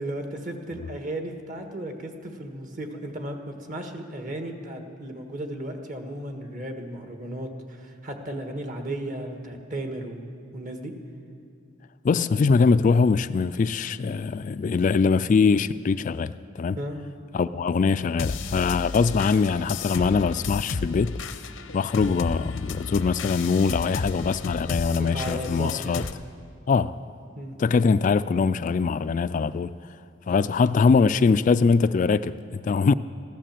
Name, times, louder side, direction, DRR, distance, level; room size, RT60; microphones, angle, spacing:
voice 1, 0.0-10.9 16.7-17.0 25.0-26.0 27.4-27.5, right 1 dB, 45° right, 1.6 m, -35 dB
voice 2, 12.0-16.8 17.3-21.2 21.7-26.0 26.7-26.9 27.6-29.7 30.3-32.9, left 5 dB, 40° left, 0.3 m, -22 dB
sound 1, 18.2-26.1, left 4 dB, 85° left, 0.8 m, -33 dB
14.5 x 12.5 x 7.5 m
head